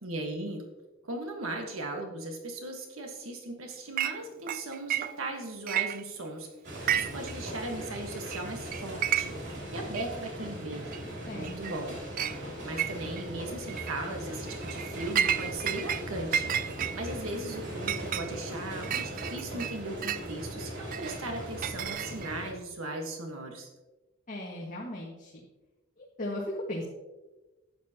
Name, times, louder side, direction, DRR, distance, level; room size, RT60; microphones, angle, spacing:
voice 1, 0.0-0.6 1.0-10.9 11.3-12.0 12.6-23.7, right 2 dB, 85° right, 2 dB, 1.4 m, -38 dB
Chink clink, 4.0-4.2 4.5-5.4 5.7-6.4 6.7-7.3 7.6-7.7 8.3-8.4 8.7-9.5 10.0-10.1 10.9-11.0 11.4-11.8 12.2-12.4 12.8-13.3 13.7-13.9 14.5-16.0 16.3-20.3 20.9-22.4, right 9 dB, 40° right, 0.3 m, -31 dB
sound 1, 6.6-22.5, equal, 60° right, 2.8 m, -39 dB
voice 2, 11.3-11.8 24.3-25.4 26.0-26.8, left 1 dB, 40° left, -3 dB, 1.6 m, -37 dB
11.5 x 9.0 x 2.9 m, 1.1 s
head